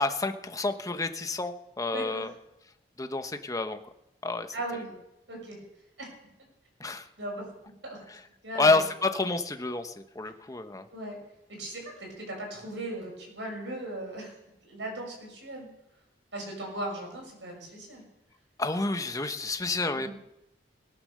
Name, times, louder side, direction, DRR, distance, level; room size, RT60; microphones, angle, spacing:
voice 1, 0.0-2.3 3.0-3.8 4.2-4.5 6.8-7.1 8.6-10.8 18.6-20.1, left 3 dB, 20° left, 8 dB, 1.0 m, -29 dB
voice 2, 1.9-2.3 4.5-4.9 5.3-5.6 6.0-6.1 7.2-7.4 7.8-8.0 8.4-8.8 10.9-11.2 11.5-14.3 14.6-15.7 16.3-18.0 19.9-20.1, right 1 dB, 85° right, 0 dB, 6.6 m, -37 dB
18.5 x 9.8 x 6.6 m, 0.87 s
head